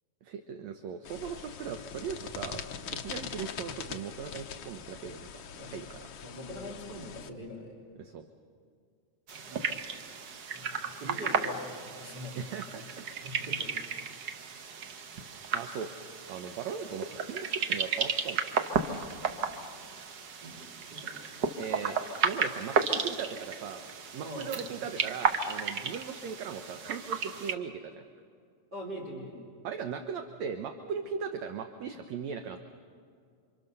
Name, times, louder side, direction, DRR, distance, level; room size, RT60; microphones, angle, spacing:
voice 1, 0.2-2.6 2.9-6.1 8.0-8.3 12.4-12.8 15.5-18.5 21.6-22.0 22.2-23.8 24.1-28.0 29.6-32.6, right 7 dB, 65° right, 7 dB, 1.9 m, -38 dB
sound 1, 1.0-7.3, left 7 dB, 80° left, 1.1 m, -42 dB
voice 2, 6.2-7.7 9.3-9.8 10.5-12.4 13.2-13.8 20.4-20.6 20.9-21.1 24.2-24.7 28.7-29.3, equal, 30° right, -2 dB, 3.7 m, -42 dB
sound 2, 9.3-27.5, right 5 dB, 90° right, 0.9 m, -34 dB
28.5 x 25.5 x 6.7 m, 2.3 s
omnidirectional pair, 3.8 m